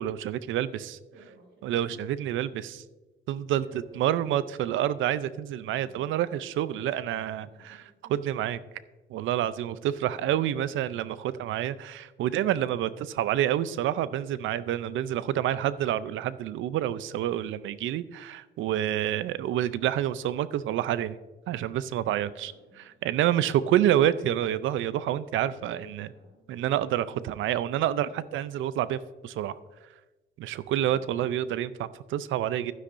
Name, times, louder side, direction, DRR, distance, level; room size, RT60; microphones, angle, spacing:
voice 1, 0.0-1.0 1.6-2.8 3.3-7.8 8.1-8.6 9.1-21.2 21.5-26.1 26.5-29.6 30.4-32.7, right 11 dB, 80° right, 16 dB, 0.5 m, -28 dB
voice 2, 1.1-1.7 3.5-4.8 7.5-8.1 22.2-23.5 25.6-26.4, right 1 dB, 65° right, 1 dB, 2.9 m, -55 dB
11.5 x 9.9 x 2.6 m, 1.1 s
cardioid pair, 90°, 20 cm